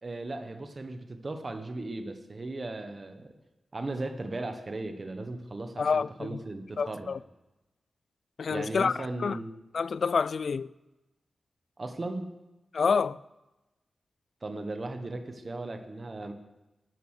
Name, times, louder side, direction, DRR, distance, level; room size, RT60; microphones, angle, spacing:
voice 1, 0.0-3.3 3.7-7.1 8.5-9.5 11.8-12.3 14.4-16.3, right 2 dB, 30° right, 1.1 m, -37 dB
voice 2, 5.8-6.4 6.8-7.2 8.4-9.4 9.7-10.7 12.7-13.2, left 5 dB, 60° left, 0.3 m, -28 dB
13.0 x 9.3 x 6.4 m
wide cardioid pair, 165°, 0 cm